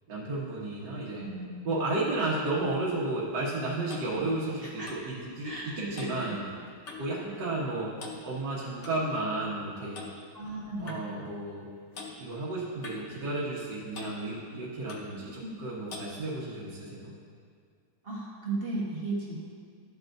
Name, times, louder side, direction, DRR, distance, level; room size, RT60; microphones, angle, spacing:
voice 1, 0.1-1.2 1.7-6.4 7.0-7.9 8.2-10.0 10.8-11.7 12.2-17.1, right 2 dB, 55° right, -7 dB, 1.8 m, -33 dB
voice 2, 1.1-1.7 2.6-2.7 4.1-4.3 4.6-4.9 5.4-6.4 7.2-7.4 10.3-11.0 15.2-15.5 18.0-19.4, right 2 dB, 30° right, -5 dB, 1.2 m, -36 dB
Clock, 3.3-7.2 7.5-7.7 8.0-9.0 9.9-10.2 10.9-11.0 11.9-12.1 12.8-13.7 13.9-14.2 14.9-15.1 15.9-16.1, left 4 dB, 55° left, 0.7 m, -44 dB
12.5 x 7.7 x 2.6 m, 2.2 s
omnidirectional pair, 2.4 m